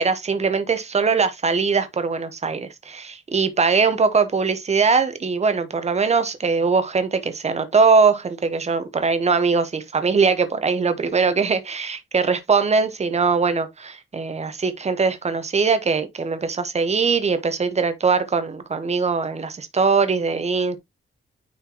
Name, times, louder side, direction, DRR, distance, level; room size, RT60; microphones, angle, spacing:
voice 1, 0.0-20.8, right 5 dB, 30° right, 1.0 m, -21 dB
9.4 x 4.4 x 2.9 m
wide cardioid pair, 175°, 21 cm